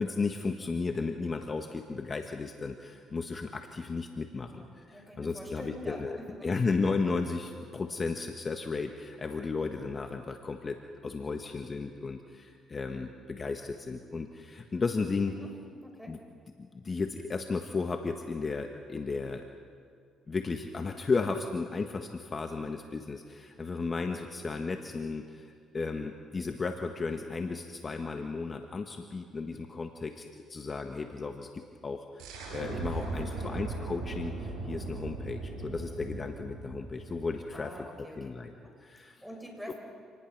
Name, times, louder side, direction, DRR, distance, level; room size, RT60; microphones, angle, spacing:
voice 1, 0.0-10.8 11.0-15.3 16.1-16.2 16.6-19.5 20.3-37.7 38.2-38.5 38.8-39.2 39.7-39.8, left 4 dB, 35° left, 5 dB, 1.4 m, -34 dB
voice 2, 4.5-6.5 15.3-15.5 15.8-16.2 32.9-33.6 37.5-38.3 38.6-38.8 39.2-39.7, equal, ahead, 1 dB, 7.0 m, -46 dB
sound 1, 32.2-37.7, right 3 dB, 85° right, 5.9 m, -38 dB
28.0 x 19.5 x 6.1 m, 2.2 s
supercardioid pair, 70°, 0 cm